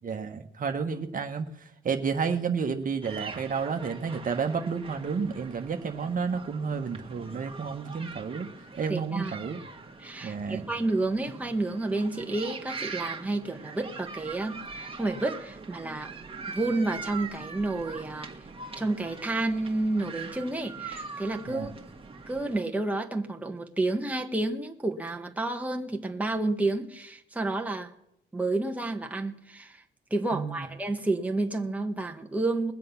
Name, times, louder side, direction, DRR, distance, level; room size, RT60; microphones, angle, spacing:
voice 1, 0.0-8.5 8.8-9.6 10.2-10.7 21.5-21.7 30.3-30.7, right 5 dB, 45° right, 4 dB, 1.3 m, -31 dB
sound 1, 3.0-22.6, right 4 dB, 30° right, 1.9 m, -42 dB
voice 2, 8.9-9.4 10.0-16.1 16.5-18.3 18.8-21.7 22.3-27.9 28.3-29.8 30.1-32.7, right 2 dB, 5° right, 3 dB, 1.4 m, -30 dB
21.0 x 7.6 x 5.8 m, 0.76 s
cardioid pair, 90°, 20 cm